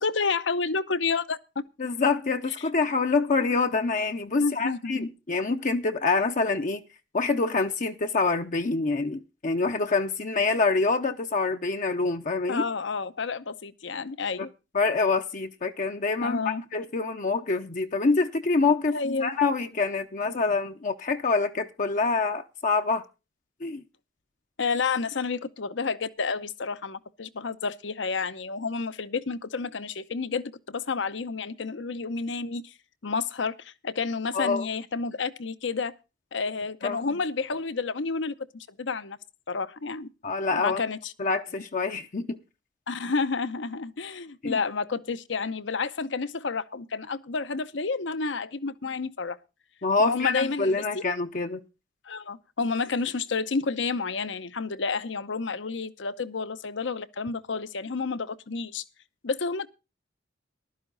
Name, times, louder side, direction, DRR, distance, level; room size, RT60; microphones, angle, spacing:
voice 1, 0.0-1.4 2.6-2.7 4.4-5.1 12.5-14.5 16.2-16.6 18.9-19.3 24.6-32.7 33.0-35.9 36.3-39.2 39.5-40.1 40.5-41.1 41.5-41.6 42.9-49.4 50.0-51.0 52.1-58.8 59.2-59.7, left 4 dB, 70° left, 0.8 m, -30 dB
voice 2, 1.8-6.8 7.1-12.6 14.4-14.5 14.7-23.0 23.6-23.8 34.3-34.6 36.8-37.1 40.2-40.8 41.2-42.4 44.4-44.6 49.8-51.6, left 4 dB, 45° left, 0.7 m, -26 dB
14.5 x 12.0 x 3.9 m
head